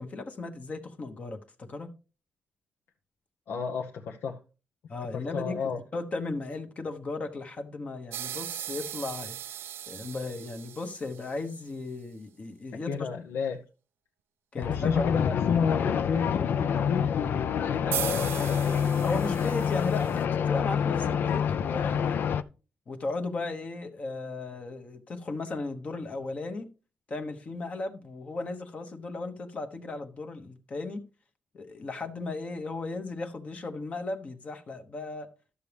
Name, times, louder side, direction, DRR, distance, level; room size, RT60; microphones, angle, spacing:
voice 1, 0.0-1.9 4.9-5.6 5.9-9.4 9.9-13.1 14.5-15.0 19.0-22.2 22.9-26.7 27.1-31.0 31.5-35.3, left 3 dB, 35° left, 1.0 m, -36 dB
voice 2, 3.5-4.4 5.1-5.8 12.7-13.6 14.6-18.8, left 6 dB, 75° left, 1.0 m, -31 dB
sound 1, 8.1-11.6 17.9-20.2, right 11 dB, 80° right, 0.4 m, -38 dB
sound 2, 14.6-22.4, left 7 dB, 60° left, 0.5 m, -27 dB
12.5 x 7.0 x 3.4 m
wide cardioid pair, 160°, 4 cm